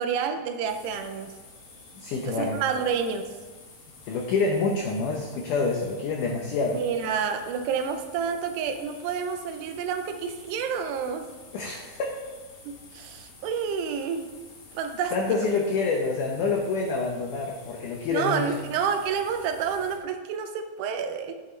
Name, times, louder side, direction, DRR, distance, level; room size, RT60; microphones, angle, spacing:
voice 1, 0.0-1.3 2.3-3.2 6.7-11.3 12.7-14.3 14.8-15.1 18.1-21.3, right 6 dB, 80° right, 7 dB, 2.8 m, -29 dB
sound 1, 0.7-20.0, left 2 dB, 55° left, 1.6 m, -50 dB
voice 2, 1.9-2.6 4.1-6.8 11.5-12.1 15.1-18.4, left 4 dB, 80° left, 1 dB, 1.8 m, -27 dB
9.8 x 9.8 x 3.2 m, 1.3 s
omnidirectional pair, 4.8 m